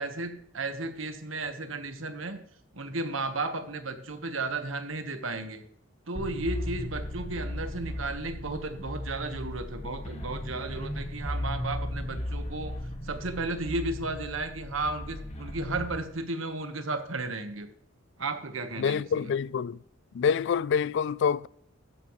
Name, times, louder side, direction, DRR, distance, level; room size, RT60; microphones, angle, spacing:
voice 1, 0.0-2.4 2.7-5.6 6.1-12.8 13.0-17.7 18.2-19.3, right 2 dB, 75° right, 1.4 m, -34 dB
sound 1, 6.1-15.9, left 1 dB, 35° left, 2.1 m, -36 dB
voice 2, 18.8-19.8 20.1-21.5, left 6 dB, 65° left, 0.3 m, -26 dB
14.0 x 10.5 x 3.2 m
head